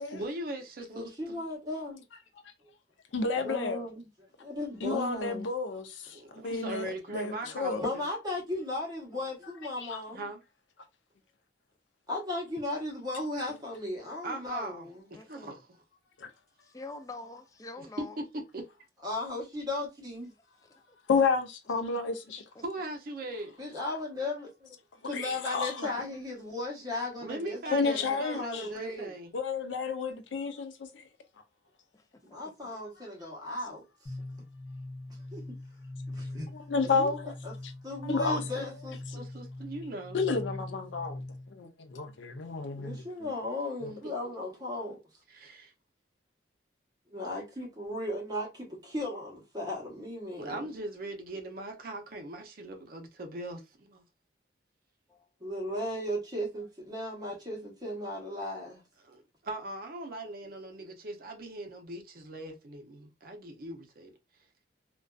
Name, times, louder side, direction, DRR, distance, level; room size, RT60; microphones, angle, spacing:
voice 1, 0.0-1.4 6.1-8.0 10.1-10.4 14.2-15.8 17.8-18.2 18.5-18.6 22.6-23.6 27.2-29.4 39.1-40.2 44.0-44.2 45.3-45.7 50.4-54.0 59.0-64.1, right 1 dB, 50° right, 0.5 m, -40 dB
voice 2, 0.9-2.0 3.3-5.5 7.8-10.3 12.1-15.1 19.0-20.3 23.6-24.8 25.0-29.1 32.3-34.2 35.1-35.4 36.1-36.5 36.9-37.1 37.4-37.5 37.8-39.3 42.8-45.0 47.1-50.7 55.4-58.8 60.8-60.9, left 1 dB, 20° right, 0.9 m, -36 dB
voice 3, 3.1-3.8 4.8-7.8 9.8-10.0 16.2-16.3 21.1-22.4 25.1-25.9 27.7-28.7 29.3-31.0 36.5-37.3 38.0-38.7 40.1-41.2 41.5-43.0 43.8-43.9, left 4 dB, 80° left, 0.5 m, -31 dB
voice 4, 15.1-15.6 16.6-18.2 20.7-21.0 22.6-22.7 31.9-32.0 32.4-32.5, left 3 dB, 20° left, 0.3 m, -45 dB
sound 1, 34.1-41.6, left 2 dB, 40° left, 0.7 m, -41 dB
2.5 x 2.2 x 2.2 m
head